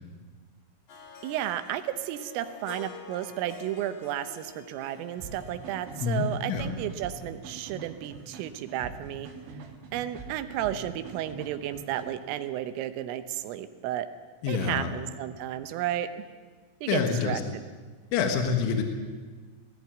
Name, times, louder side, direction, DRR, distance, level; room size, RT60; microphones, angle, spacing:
Harp, 0.9-8.1, left 5 dB, 50° left, 2.6 m, -49 dB
voice 1, 1.2-9.3 9.9-14.1 14.5-16.3 16.8-17.6, right 12 dB, 85° right, 9 dB, 3.5 m, -33 dB
sound 1, 5.2-12.4, right 4 dB, 70° right, 5.0 m, -44 dB
voice 2, 6.0-6.7 14.4-14.9 16.9-17.4 18.1-18.8, left 6 dB, 75° left, 5 dB, 3.8 m, -27 dB
18.0 x 15.5 x 9.4 m, 1.4 s
omnidirectional pair, 5.7 m